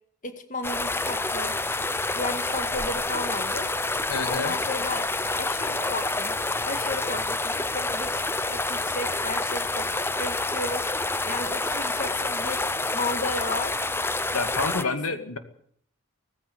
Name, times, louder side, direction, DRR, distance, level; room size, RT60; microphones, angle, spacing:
voice 1, 0.2-1.6 2.1-3.7 4.3-5.1 5.3-6.4 6.7-10.9 11.2-12.6 12.9-13.8 14.6-15.0, left 2 dB, 35° left, 8 dB, 1.9 m, -34 dB
sound 1, 0.6-14.8, left 2 dB, 10° left, 0.8 m, -28 dB
voice 2, 4.1-4.6 14.3-15.4, left 3 dB, 85° left, 9 dB, 2.3 m, -29 dB
18.0 x 15.5 x 9.4 m, 0.64 s
head